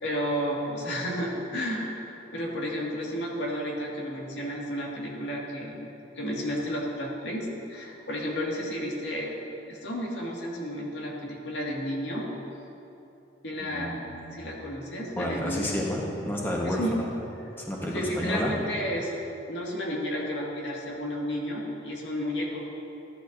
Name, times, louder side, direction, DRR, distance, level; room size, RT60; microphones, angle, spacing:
voice 1, 0.0-1.9 2.3-5.9 6.2-9.3 9.7-12.2 13.4-14.0 14.3-15.8 16.6-17.0 17.8-19.1 19.5-22.6, equal, 85° left, -3 dB, 2.0 m, -32 dB
voice 2, 13.7-14.4 15.2-17.1 17.6-18.5, left 1 dB, 15° left, -3 dB, 1.2 m, -30 dB
14.0 x 11.0 x 2.6 m, 2.8 s
head